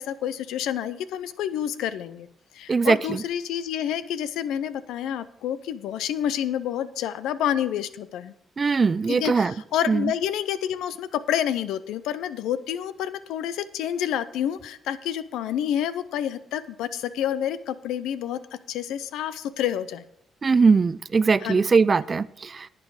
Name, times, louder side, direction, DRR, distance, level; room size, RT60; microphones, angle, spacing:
voice 1, 0.0-2.3 2.5-8.3 9.1-18.4 18.7-20.0 21.4-21.6, left 10 dB, 85° left, 14 dB, 0.6 m, -28 dB
voice 2, 2.7-3.2 8.6-9.5 9.9-10.1 20.4-22.7, right 4 dB, 40° right, 18 dB, 0.4 m, -21 dB
11.0 x 8.6 x 4.8 m, 0.75 s
supercardioid pair, 70°, 0 cm